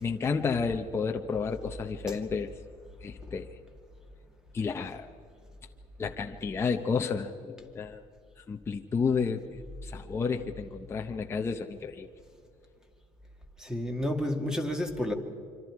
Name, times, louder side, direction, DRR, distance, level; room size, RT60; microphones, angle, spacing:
voice 1, 0.0-2.5 3.0-3.5 4.5-5.1 6.0-8.0 8.5-12.1, left 5 dB, 20° left, 0.8 m, -31 dB
voice 2, 13.6-15.1, left 1 dB, 5° right, 2.1 m, -31 dB
26.0 x 25.5 x 4.8 m
cardioid pair, 145°, 13 cm